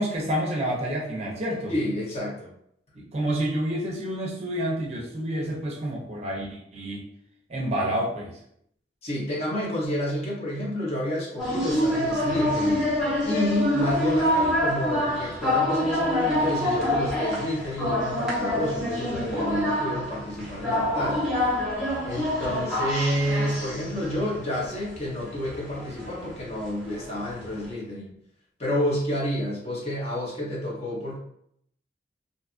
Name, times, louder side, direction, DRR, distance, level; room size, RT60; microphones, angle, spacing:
voice 1, 0.0-1.7 2.9-7.1 7.5-8.4, equal, 35° right, -2 dB, 0.6 m, -29 dB
voice 2, 1.7-2.5 9.0-12.8 13.2-21.3 22.0-28.1 28.6-31.2, left 1 dB, 35° left, -5 dB, 0.8 m, -29 dB
sound 1, 11.4-27.6, left 1 dB, 5° right, 0.8 m, -27 dB
2.7 x 2.4 x 2.4 m, 0.72 s
head